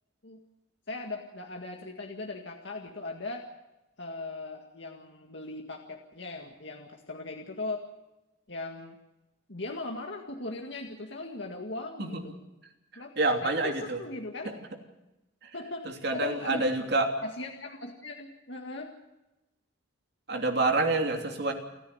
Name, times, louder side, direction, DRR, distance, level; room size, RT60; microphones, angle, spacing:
voice 1, 0.9-3.5 4.0-7.9 8.5-9.0 9.5-12.3 13.0-13.1 13.4-14.5 15.5-16.7 17.2-18.9, left 2 dB, 60° left, 1 dB, 2.0 m, -39 dB
voice 2, 12.9-14.0 14.4-14.5 15.4-15.5 16.0-17.1 20.3-21.5, right 2 dB, 55° right, 3 dB, 3.0 m, -27 dB
29.5 x 10.0 x 9.6 m, 0.97 s
head